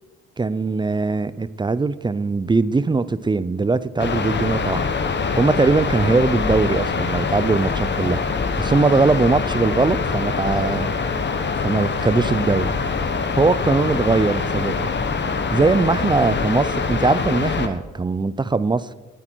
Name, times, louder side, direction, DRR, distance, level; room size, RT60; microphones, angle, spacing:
voice 1, 0.4-4.9 5.4-8.2 8.6-10.9 11.6-12.7 13.4-14.9 15.3-18.9, right 3 dB, 15° right, 16 dB, 0.5 m, -20 dB
sound 1, 4.0-17.7, left 4 dB, 35° left, 1.2 m, -24 dB
20.0 x 8.4 x 4.6 m, 1.2 s
cardioid pair, 90°, 30 cm